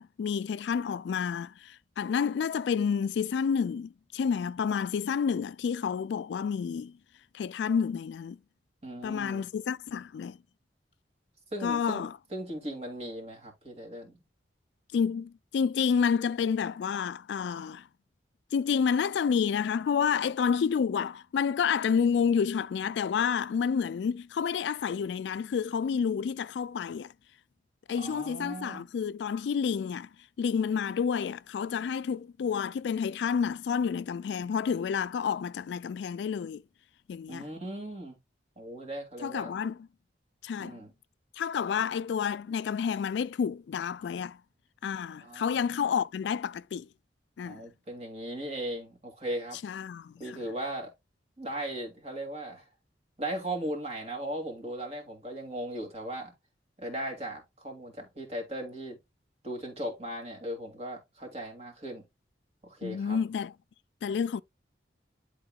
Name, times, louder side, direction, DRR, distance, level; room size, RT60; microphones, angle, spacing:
voice 1, 0.0-7.0 7.3-8.4 9.0-10.4 11.6-12.1 14.9-17.9 18.5-27.1 27.9-30.1 30.4-36.6 37.1-37.5 39.2-39.8 40.4-40.8 41.4-44.4 44.8-46.9 47.4-47.6 49.6-50.4 62.8-63.5 64.0-64.4, left 6 dB, 75° left, 0.3 m, -29 dB
voice 2, 8.8-9.5 11.5-14.1 28.0-28.9 37.3-38.2 38.6-39.5 40.6-40.9 45.2-45.9 47.4-49.6 50.2-50.9 51.4-52.7 53.2-56.3 56.8-59.0 59.4-62.0 62.6-63.2, right 1 dB, 35° right, 2.3 m, -38 dB
10.5 x 3.9 x 2.3 m
head